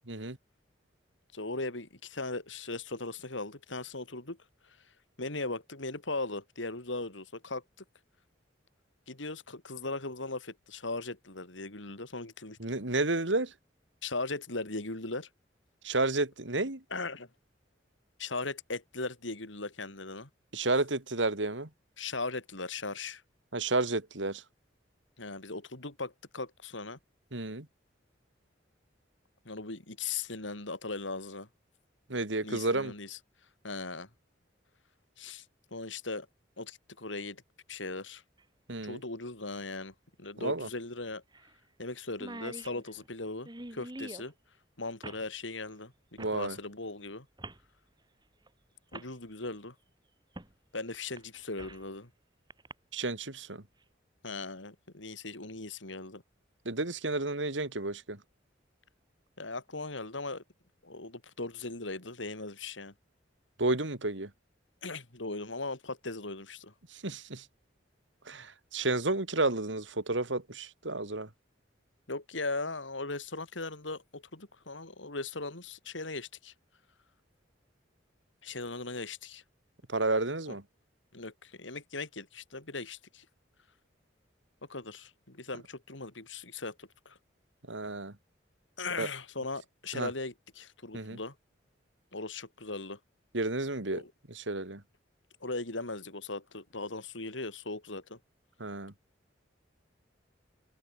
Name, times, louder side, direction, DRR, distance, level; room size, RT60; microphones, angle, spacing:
voice 1, 1.3-4.4 5.2-7.6 9.1-12.6 14.0-15.3 16.9-17.3 18.2-20.3 22.0-23.2 25.2-27.0 29.5-31.5 32.4-33.2 33.6-34.1 35.2-35.5 35.7-36.3 36.6-37.4 37.7-38.2 38.8-41.2 41.8-44.3 44.8-47.3 48.9-49.7 50.7-52.1 54.2-56.2 59.4-60.4 60.8-62.9 64.8-66.7 72.1-76.5 78.4-79.4 80.5-80.6 81.1-83.3 84.7-87.2 88.8-91.3 92.1-93.0 93.9-94.1 95.4-98.2, left 3 dB, 90° left, 4.0 m, -38 dB
voice 2, 12.6-13.5 15.8-16.8 20.5-21.7 23.5-24.4 27.3-27.7 32.1-32.9 38.7-39.0 40.4-40.7 46.2-46.6 52.9-53.6 56.6-58.2 63.6-64.3 66.9-67.5 68.3-71.3 79.9-80.6 87.7-88.1 89.0-89.1 89.9-90.1 90.9-91.2 93.3-94.0 94.3-94.8 98.6-98.9, right 2 dB, 80° right, 2.7 m, -31 dB
sound 1, 38.4-38.5 40.3-40.4 40.7-40.8 41.3-41.5 41.8-41.9 42.1-44.3 45.0-45.3 46.2-46.4 47.4-47.6 48.5-48.6 48.9-49.1 50.4-50.5 50.9-51.9 52.5-52.7, right 2 dB, 25° right, 2.2 m, -45 dB
head